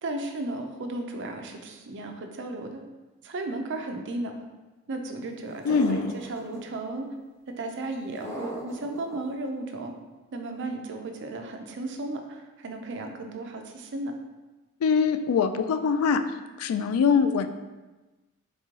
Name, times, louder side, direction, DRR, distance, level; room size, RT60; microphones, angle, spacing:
voice 1, 0.0-2.8 3.2-4.3 4.9-7.1 7.6-9.9 10.3-14.1, right 2 dB, 60° right, 4 dB, 0.5 m, -35 dB
voice 2, 5.6-6.1 14.8-16.2 16.6-17.5, left 5 dB, 80° left, 12 dB, 0.3 m, -23 dB
sound 1, 5.7-6.6 8.2-9.2, equal, 15° left, 0.6 m, -37 dB
3.5 x 3.1 x 3.6 m, 1.2 s
head